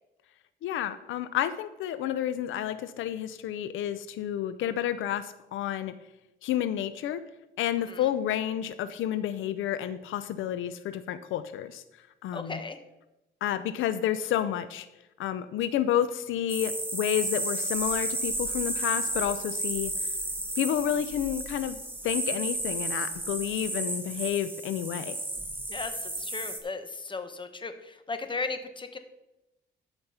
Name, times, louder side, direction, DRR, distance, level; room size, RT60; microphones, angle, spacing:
voice 1, 0.6-5.9 6.4-7.2 7.6-11.8 12.2-12.6 13.4-14.9 15.2-19.9 20.6-21.8 22.0-25.2, left 11 dB, 80° left, 12 dB, 0.6 m, -30 dB
voice 2, 12.3-12.8 25.7-29.0, left 3 dB, 25° left, 9 dB, 1.1 m, -36 dB
sound 1, 16.5-26.6, right 1 dB, 10° right, 1.8 m, -33 dB
12.5 x 5.3 x 5.6 m, 0.97 s
cardioid pair, 90°, 20 cm